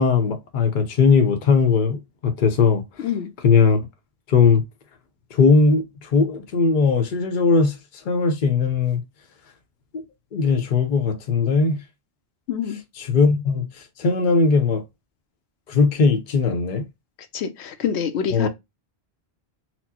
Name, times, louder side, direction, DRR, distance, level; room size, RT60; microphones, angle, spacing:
voice 1, 0.0-2.8 3.4-3.8 4.3-4.6 5.3-7.8 8.0-9.0 9.9-10.0 10.3-11.8 13.0-13.7 14.0-14.8 15.7-16.9 18.3-18.5, left 4 dB, 50° left, 0.8 m, -19 dB
voice 2, 3.0-3.3 12.5-12.8 17.3-18.5, left 7 dB, 85° left, 0.9 m, -26 dB
4.3 x 2.1 x 2.7 m
omnidirectional pair, 1.1 m